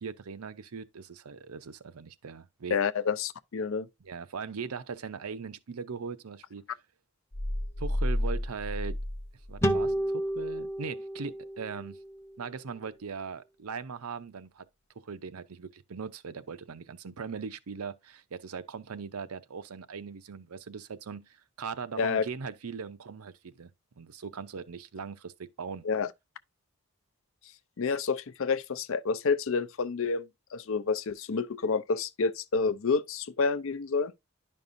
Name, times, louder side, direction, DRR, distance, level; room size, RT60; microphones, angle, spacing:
voice 1, 0.0-2.8 4.0-6.7 7.8-9.0 9.5-12.0 12.4-14.7 15.0-23.7 24.0-25.8, right 5 dB, 90° right, 0.6 m, -40 dB
voice 2, 2.7-3.9 22.0-22.2 25.8-26.1 27.8-34.1, left 5 dB, 65° left, 0.5 m, -29 dB
sound 1, 7.3-10.0, left 1 dB, 45° left, 0.9 m, -32 dB
sound 2, 9.6-13.0, right 1 dB, 10° left, 0.7 m, -32 dB
10.5 x 5.4 x 2.5 m
head